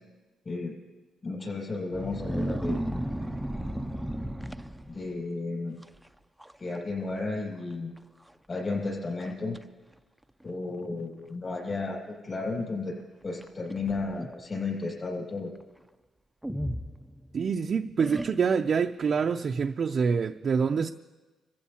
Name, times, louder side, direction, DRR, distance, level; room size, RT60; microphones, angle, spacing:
voice 1, 1.2-2.8 3.2-3.3 4.9-5.8 6.6-7.9 8.5-9.6 10.4-15.5, left 3 dB, 35° left, 6.8 m, -33 dB
sound 1, 1.9-5.2 5.8-6.1 6.4-6.8 7.1-7.2 8.0-8.1 8.6-8.7 9.2-9.6 10.5-10.6 13.4-14.4 16.4-17.5 18.0-18.7, equal, 5° right, 0.5 m, -34 dB
voice 2, 17.3-20.9, right 6 dB, 50° right, 0.5 m, -26 dB
25.5 x 15.0 x 2.9 m
cardioid pair, 90°, 0 cm